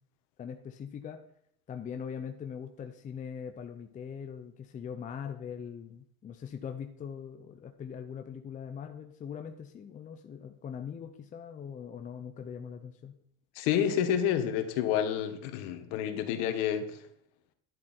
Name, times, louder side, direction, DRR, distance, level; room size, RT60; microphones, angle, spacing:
voice 1, 0.4-1.2 1.7-13.1, left 7 dB, 20° left, 6 dB, 0.7 m, -41 dB
voice 2, 13.5-16.9, left 9 dB, 65° left, 8 dB, 1.6 m, -29 dB
10.5 x 10.0 x 4.4 m, 0.69 s
supercardioid pair, 145°, 37 cm